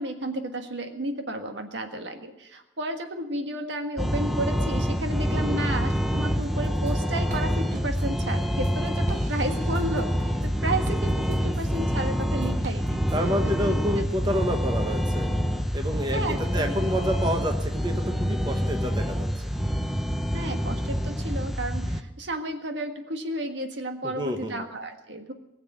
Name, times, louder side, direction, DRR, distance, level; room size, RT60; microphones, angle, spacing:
voice 1, 0.0-13.0 13.6-14.1 16.1-16.7 20.3-25.3, right 1 dB, 65° right, 6 dB, 1.6 m, -32 dB
sound 1, 4.0-22.0, equal, ahead, 0.8 m, -27 dB
voice 2, 5.3-5.7 13.1-15.3 15.7-19.3 24.1-24.6, equal, 25° right, 4 dB, 1.2 m, -29 dB
sound 2, 6.4-6.9 7.3-11.8 12.2-13.2, right 2 dB, 40° right, 0.9 m, -42 dB
20.0 x 7.4 x 8.9 m, 0.93 s
head